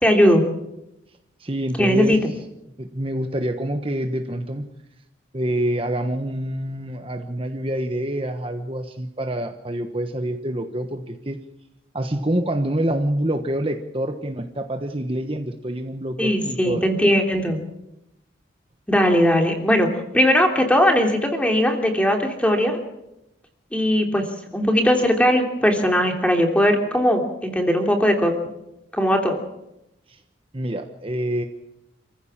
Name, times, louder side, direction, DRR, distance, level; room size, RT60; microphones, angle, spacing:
voice 1, 0.0-0.4 1.8-2.2 16.2-17.6 18.9-22.8 23.7-24.3 24.5-28.3 28.9-29.4, equal, 5° left, 3 dB, 3.1 m, -19 dB
voice 2, 1.4-2.2 2.8-4.7 5.3-11.4 11.9-16.8 30.1-30.2 30.5-31.4, right 1 dB, 30° right, 5 dB, 1.3 m, -26 dB
28.0 x 15.5 x 7.4 m, 0.87 s
head